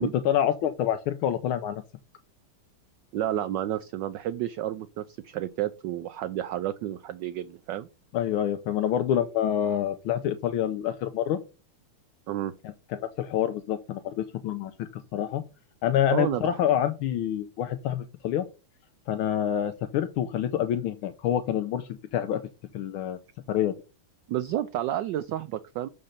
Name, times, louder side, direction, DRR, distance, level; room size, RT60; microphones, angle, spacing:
voice 1, 0.2-1.8 8.1-11.4 12.9-15.4 15.8-18.4 19.1-22.4 22.7-23.2 23.5-23.7, left 10 dB, 75° left, 8 dB, 1.5 m, -27 dB
voice 2, 3.1-7.9 12.3-12.5 16.1-16.6 24.3-25.9, right 12 dB, 80° right, 13 dB, 1.0 m, -31 dB
6.5 x 5.2 x 5.6 m, 0.31 s
omnidirectional pair, 2.4 m